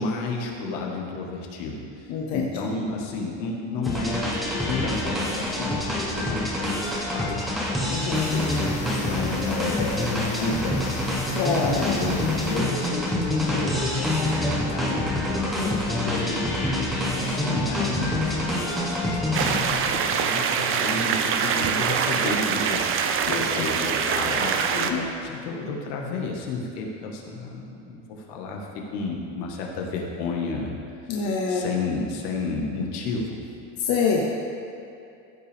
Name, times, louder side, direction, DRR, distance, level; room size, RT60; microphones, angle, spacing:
voice 1, 0.0-4.3 4.6-7.9 8.3-11.1 11.7-16.5 17.1-22.9 23.3-25.0 25.2-30.8 31.0-31.2 31.5-33.4, left 3 dB, 70° left, 0 dB, 1.6 m, -32 dB
voice 2, 2.1-2.4 7.8-8.3 11.3-11.9 15.6-15.9 23.3-23.7 24.7-25.1 31.1-31.7 33.8-34.2, left 5 dB, 55° left, -2 dB, 1.1 m, -26 dB
sound 1, 3.8-20.0, left 1 dB, ahead, 1.4 m, -26 dB
sound 2, 8.1-13.3, left 2 dB, 20° left, 1.0 m, -39 dB
sound 3, 19.3-24.9, right 6 dB, 35° right, 0.6 m, -24 dB
15.0 x 5.7 x 3.5 m, 2.7 s
supercardioid pair, 135°, 36 cm